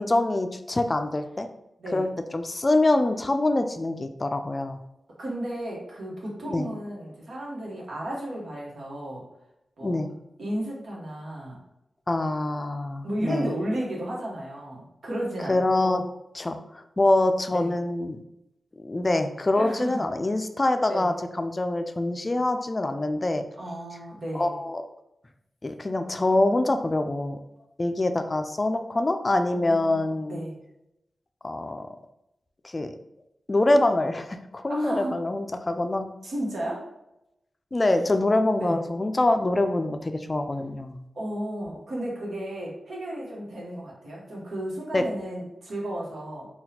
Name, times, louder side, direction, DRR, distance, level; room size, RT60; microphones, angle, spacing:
voice 1, 0.0-1.5 1.9-4.8 6.5-6.7 9.8-10.1 12.1-13.5 15.5-16.0 16.3-18.2 18.8-23.4 24.3-24.8 25.6-27.4 27.8-30.4 31.4-31.9 32.6-32.9 33.5-36.1 37.7-41.0 44.9-45.0, left 2 dB, 35° left, 7 dB, 0.3 m, -25 dB
voice 2, 5.2-9.2 9.8-10.0 10.4-11.6 13.0-16.0 17.5-17.7 19.5-20.0 20.9-21.1 23.6-24.5 29.5-30.6 34.7-35.2 36.2-36.9 38.5-38.8 41.1-46.5, right 1 dB, 80° right, -3 dB, 1.0 m, -33 dB
3.9 x 2.3 x 2.8 m, 0.87 s
cardioid pair, 45°, 0 cm